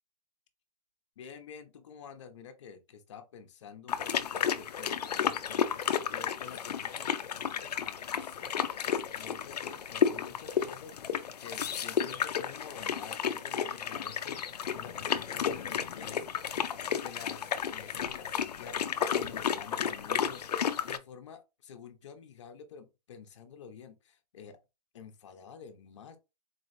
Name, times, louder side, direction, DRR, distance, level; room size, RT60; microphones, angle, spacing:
voice 1, 1.2-16.6 17.0-24.6 24.9-26.2, left 6 dB, 50° left, 0.8 m, -49 dB
sound 1, 3.9-21.0, left 8 dB, 90° left, 0.5 m, -32 dB
4.1 x 3.0 x 2.6 m
hypercardioid pair, 165°, 20 cm